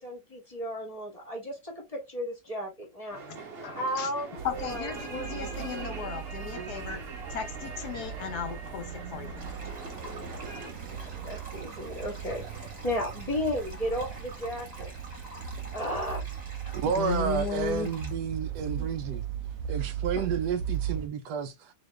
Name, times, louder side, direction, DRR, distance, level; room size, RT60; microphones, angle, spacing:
voice 1, 0.0-3.2 3.6-5.3 10.0-10.4 10.9-14.9 15.7-16.2, equal, 20° left, 1.4 m, -34 dB
sound 1, 3.1-10.7, right 3 dB, 40° right, 1.1 m, -43 dB
voice 2, 3.6-4.1 4.4-7.0 7.3-9.4 15.3-15.7 16.6-17.9 20.1-20.3, left 8 dB, 70° left, 1.2 m, -36 dB
sound 2, 4.4-21.1, right 8 dB, 65° right, 0.9 m, -38 dB
sound 3, 9.4-18.1, right 2 dB, 25° right, 1.3 m, -47 dB
voice 3, 16.7-19.3 19.7-21.7, right 7 dB, 80° right, 1.2 m, -31 dB
4.1 x 2.9 x 3.1 m
omnidirectional pair, 1.8 m